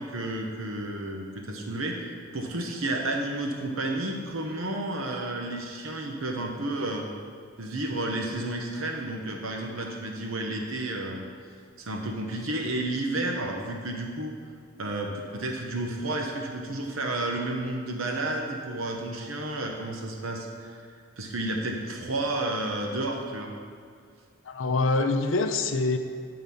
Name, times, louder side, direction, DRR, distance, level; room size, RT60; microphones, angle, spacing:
voice 1, 0.0-2.0 2.3-7.1 7.6-11.3 11.8-14.3 14.8-20.9 21.2-23.5, right 2 dB, 80° right, 2 dB, 0.9 m, -31 dB
voice 2, 24.5-26.0, left 3 dB, 65° left, 6 dB, 0.6 m, -25 dB
9.5 x 3.9 x 6.9 m, 2.1 s
head